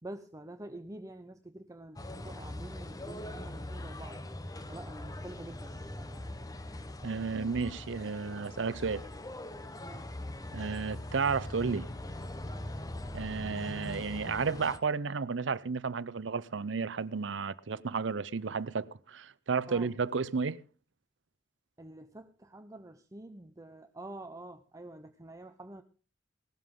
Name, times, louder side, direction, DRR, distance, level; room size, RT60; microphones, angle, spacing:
voice 1, 0.0-4.2 4.7-6.4 9.8-10.2 19.7-19.9 21.8-25.8, right 1 dB, 20° right, 0.6 m, -47 dB
sound 1, 2.0-14.8, left 1 dB, 20° left, 0.8 m, -41 dB
voice 2, 7.0-9.0 10.5-11.9 13.1-20.6, right 5 dB, 85° right, 0.6 m, -32 dB
17.0 x 12.5 x 3.6 m
head